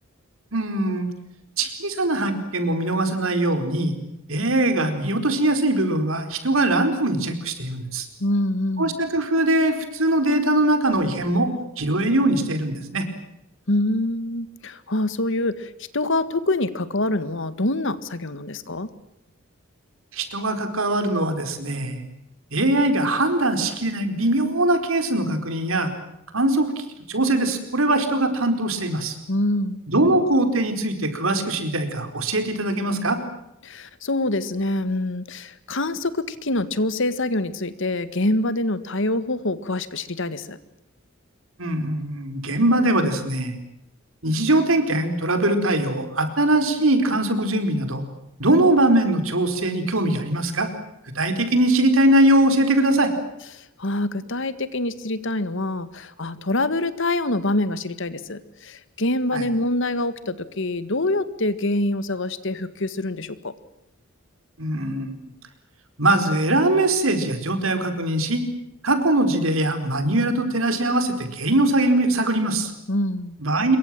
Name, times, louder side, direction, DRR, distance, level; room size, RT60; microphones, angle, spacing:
voice 1, 0.5-1.1 1.6-3.9 4.3-8.1 8.8-11.5 11.8-13.1 20.1-22.0 22.5-25.9 26.3-29.2 29.9-33.2 41.6-43.5 44.2-48.0 48.4-50.7 51.1-53.1 59.3-59.4 64.6-65.3 66.0-68.4 68.8-72.7 73.4-73.8, right 1 dB, 70° right, 8 dB, 4.6 m, -21 dB
voice 2, 8.2-8.9 13.7-18.9 29.3-29.8 33.6-40.6 53.5-63.5 72.9-73.4, left 2 dB, 65° left, 14 dB, 1.8 m, -25 dB
26.5 x 23.0 x 7.7 m, 0.84 s
head